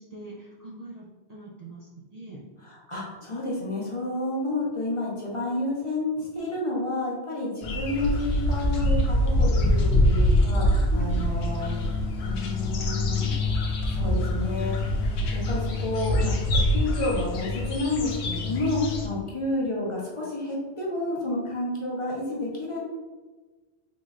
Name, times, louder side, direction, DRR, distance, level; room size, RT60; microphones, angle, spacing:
voice 1, 0.0-2.4 10.7-11.3 19.3-19.4, right 1 dB, 50° right, -4 dB, 0.5 m, -42 dB
voice 2, 2.6-11.9 12.2-13.3 13.9-14.7 15.3-22.8, left 2 dB, 35° left, -5 dB, 0.6 m, -30 dB
sound 1, 7.6-19.1, left 1 dB, 80° left, 0.9 m, -24 dB
3.8 x 3.0 x 2.4 m, 1.3 s
omnidirectional pair, 1.1 m